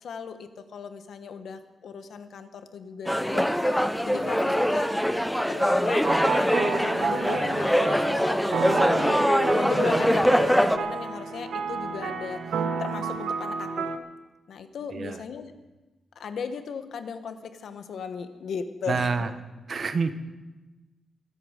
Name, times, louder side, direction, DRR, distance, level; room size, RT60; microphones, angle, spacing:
voice 1, 0.0-4.9 5.5-8.3 8.7-13.9 14.5-15.5 16.2-19.3, left 6 dB, 70° left, 9 dB, 1.1 m, -37 dB
sound 1, 3.1-10.8, equal, ahead, 0.5 m, -23 dB
sound 2, 6.0-14.0, right 5 dB, 85° right, 1.0 m, -31 dB
voice 2, 14.9-15.2 18.9-19.3 19.7-20.1, right 4 dB, 40° right, 11 dB, 0.8 m, -27 dB
23.5 x 8.3 x 5.0 m, 1.1 s
wide cardioid pair, 160°, 0 cm